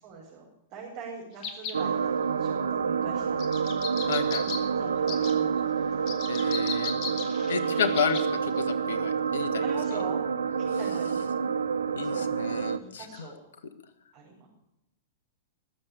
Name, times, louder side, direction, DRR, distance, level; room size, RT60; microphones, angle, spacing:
voice 1, 0.0-4.3 4.7-5.7 6.0-6.7 7.6-8.0 9.6-10.2 10.6-11.4 12.0-12.3 12.8-13.4 14.1-14.5, right 4 dB, 45° right, -4 dB, 5.4 m, -43 dB
sound 1, 1.4-1.8 3.4-4.6 5.1-5.3 6.1-8.3 8.6-8.7, left 6 dB, 40° left, 2.5 m, -36 dB
sound 2, 1.7-12.8, right 6 dB, 75° right, 0.7 m, -28 dB
voice 2, 4.1-4.4 6.3-6.9 7.5-9.6 9.9-10.0 11.9-13.2, left 7 dB, 65° left, 11 dB, 1.6 m, -31 dB
20.5 x 7.6 x 8.4 m, 0.86 s
figure-of-eight pair, 105°, 0 cm